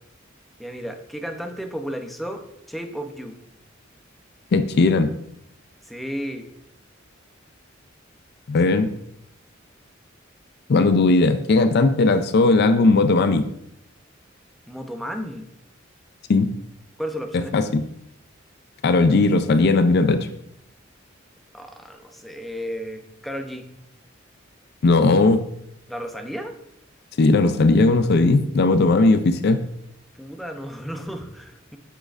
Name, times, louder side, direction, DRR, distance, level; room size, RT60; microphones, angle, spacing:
voice 1, 0.6-3.4 5.8-6.5 14.7-15.5 17.0-17.5 21.5-23.7 25.9-26.5 30.2-31.8, equal, ahead, 4 dB, 0.6 m, -33 dB
voice 2, 4.5-5.1 8.5-8.9 10.7-13.5 16.3-16.5 17.5-17.8 18.8-20.3 24.8-25.4 27.2-29.6, left 3 dB, 55° left, 10 dB, 0.4 m, -17 dB
8.0 x 6.4 x 2.5 m, 0.75 s
head